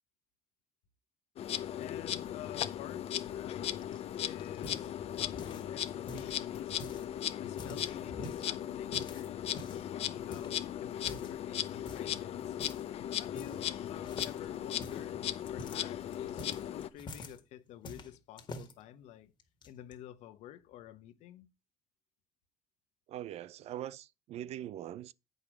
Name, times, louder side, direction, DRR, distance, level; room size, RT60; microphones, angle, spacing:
Insect, 1.4-16.9, left 10 dB, 60° left, 0.8 m, -37 dB
voice 1, 1.8-3.6 4.2-7.0 7.4-12.6 13.2-19.3 19.6-21.5, left 12 dB, 80° left, 1.1 m, -50 dB
sound 1, 3.8-5.8 6.1-7.1 7.4-8.5 8.9-9.9 10.3-10.6 11.0-11.4 11.8-12.2 12.6-12.8 13.1-13.8 14.0-17.4 17.8-18.7 19.4-19.9, left 1 dB, 45° left, 1.9 m, -47 dB
voice 2, 23.1-25.1, right 12 dB, 70° right, 0.6 m, -42 dB
8.3 x 5.3 x 6.2 m
cardioid pair, 100°, 11 cm